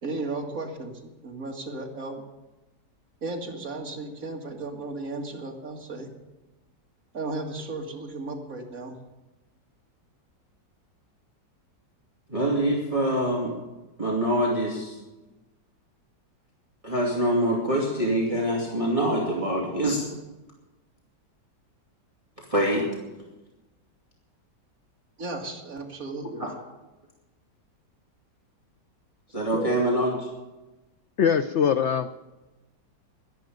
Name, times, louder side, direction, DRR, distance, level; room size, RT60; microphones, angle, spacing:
voice 1, 0.0-2.2 3.2-6.1 7.1-9.0 25.2-26.5 29.3-29.8, right 2 dB, 50° right, 2 dB, 2.4 m, -35 dB
voice 2, 12.3-13.5 14.0-15.0 16.8-20.1 22.5-22.9 26.4-26.5 29.3-30.1, right 1 dB, 20° right, -3 dB, 2.6 m, -25 dB
voice 3, 31.2-32.1, left 7 dB, 85° left, 11 dB, 0.6 m, -22 dB
11.5 x 11.0 x 9.3 m, 1.1 s
omnidirectional pair, 1.9 m